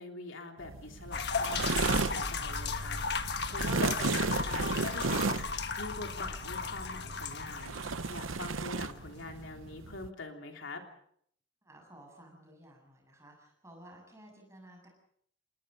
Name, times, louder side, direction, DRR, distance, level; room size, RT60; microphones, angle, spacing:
voice 1, 0.0-10.8, left 3 dB, 75° left, 3 dB, 3.2 m, -44 dB
sound 1, 0.6-10.1, right 4 dB, 85° right, 0.8 m, -35 dB
sound 2, 1.1-8.7, left 4 dB, 55° left, 1.5 m, -35 dB
voice 2, 11.6-14.9, right 1 dB, 15° right, 1 dB, 7.5 m, -54 dB
29.0 x 20.5 x 5.6 m, 0.66 s
head